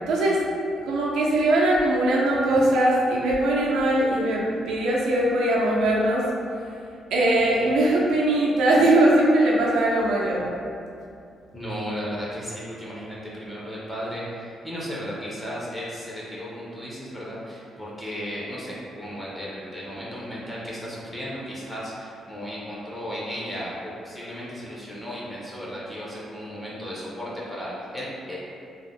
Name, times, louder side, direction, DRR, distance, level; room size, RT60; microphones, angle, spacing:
voice 1, 0.1-0.4 0.9-6.2 7.1-10.4, right 1 dB, 85° right, -4 dB, 0.5 m, -21 dB
voice 2, 11.5-28.4, equal, 10° left, -7 dB, 0.4 m, -35 dB
2.3 x 2.0 x 3.4 m, 2.5 s
cardioid pair, 160°, 0 cm